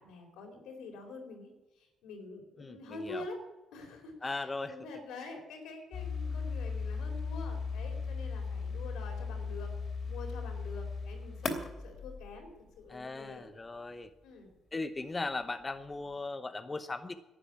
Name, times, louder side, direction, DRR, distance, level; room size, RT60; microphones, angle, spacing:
voice 1, 0.0-1.5 2.0-3.4 3.7-9.7 10.1-12.5 12.8-13.5 14.2-14.5, left 3 dB, 90° left, 3 dB, 4.3 m, -46 dB
voice 2, 2.6-3.3 4.2-4.8 12.9-14.1 14.7-17.1, left 3 dB, 25° left, 10 dB, 0.8 m, -38 dB
sound 1, 5.9-12.9, left 4 dB, 45° left, 3.0 m, -37 dB
11.5 x 8.9 x 9.9 m, 1.1 s
cardioid pair, 90°, 0 cm